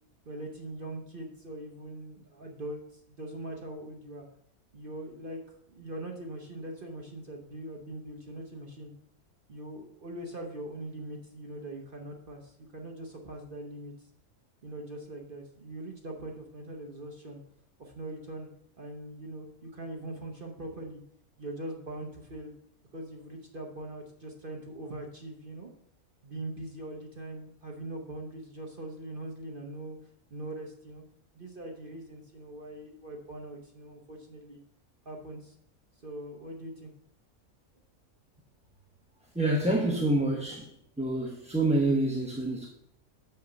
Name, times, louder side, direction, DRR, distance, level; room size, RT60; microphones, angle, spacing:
voice 1, 0.3-4.3 4.7-8.9 9.5-13.9 14.6-17.4 17.8-18.5 18.8-21.0 21.4-22.5 22.9-25.7 26.2-30.0 30.3-31.0 31.3-34.6 35.0-35.5 36.0-36.9, right 1 dB, 40° right, 1 dB, 1.1 m, -41 dB
voice 2, 39.3-40.7 41.0-42.7, right 1 dB, 5° right, -2 dB, 0.9 m, -27 dB
6.7 x 5.8 x 6.6 m, 0.71 s
omnidirectional pair, 1.5 m